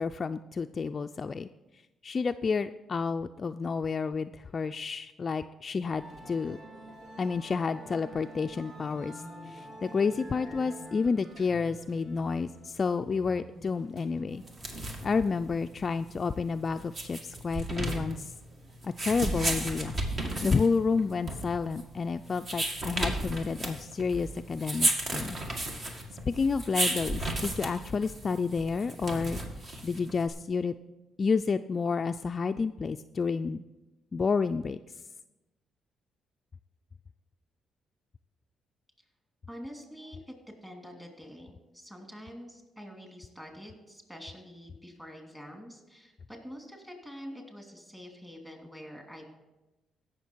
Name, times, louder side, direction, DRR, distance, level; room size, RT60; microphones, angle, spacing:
voice 1, 0.0-1.5 2.0-6.6 7.2-14.4 15.0-18.3 18.8-25.4 26.3-29.4 29.8-30.7 31.2-33.6 34.1-34.8, left 5 dB, 40° left, 8 dB, 0.3 m, -30 dB
Musical instrument, 5.9-21.4, equal, 70° right, 2.2 m, -49 dB
sound 1, 14.4-30.3, right 1 dB, 45° right, 1.9 m, -34 dB
voice 2, 39.5-40.3 40.6-49.3, equal, 10° right, 2 dB, 2.7 m, -46 dB
16.0 x 6.4 x 4.5 m, 1.0 s
cardioid pair, 90°, 0 cm